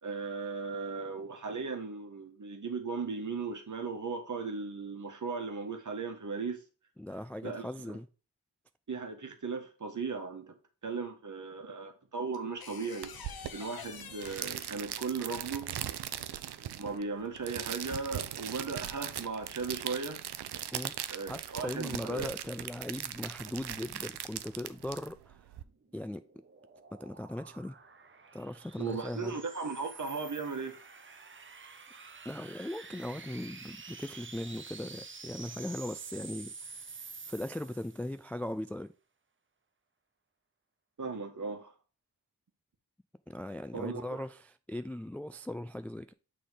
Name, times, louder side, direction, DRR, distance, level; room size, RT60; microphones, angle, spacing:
voice 1, 0.0-6.6 7.4-8.0 8.9-10.5 10.8-13.1 13.5-15.7 16.6-20.2 21.1-22.3 28.8-30.8 41.0-41.7 43.7-44.2, right 4 dB, 50° right, 1.4 m, -37 dB
voice 2, 7.0-8.1 20.7-20.9 21.3-25.4 25.9-26.2 26.9-27.8 28.3-29.3 32.3-38.9 43.3-46.1, left 1 dB, 5° left, 0.3 m, -39 dB
sound 1, 12.3-15.1 16.7-17.0, left 6 dB, 60° left, 1.0 m, -47 dB
sound 2, 13.0-25.6, right 11 dB, 75° right, 0.6 m, -40 dB
sound 3, 25.7-38.2, right 4 dB, 30° right, 0.8 m, -49 dB
6.4 x 3.8 x 5.0 m
cardioid pair, 55°, 40 cm